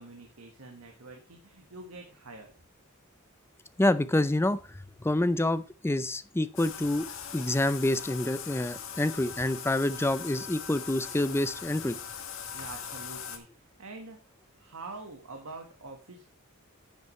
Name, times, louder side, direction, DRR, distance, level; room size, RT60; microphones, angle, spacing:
voice 1, 0.0-2.5 12.5-16.3, right 3 dB, 80° right, 3 dB, 1.5 m, -46 dB
voice 2, 3.8-4.6 5.0-7.1 7.3-12.0, left 1 dB, 10° left, 14 dB, 0.5 m, -27 dB
Bathtub (filling or washing), 6.6-13.4, left 7 dB, 65° left, 1.5 m, -40 dB
10.5 x 8.2 x 3.2 m, 0.33 s
head